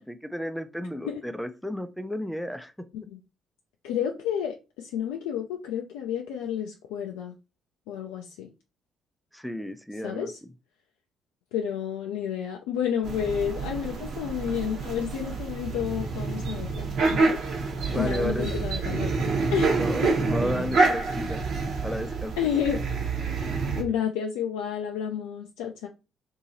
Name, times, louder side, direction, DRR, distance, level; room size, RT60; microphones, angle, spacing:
voice 1, 0.0-2.9 9.3-10.3 17.9-18.5 19.7-21.4 21.8-22.4, equal, 5° left, 0.5 m, -33 dB
voice 2, 3.8-7.3 7.9-8.5 10.0-10.4 11.5-17.4 17.9-19.1 19.5-20.2 22.4-22.8 23.8-25.9, left 8 dB, 80° left, 0.4 m, -30 dB
sound 1, 13.0-23.8, right 4 dB, 60° right, 1.1 m, -27 dB
2.9 x 2.7 x 4.0 m
hypercardioid pair, 45°, 0 cm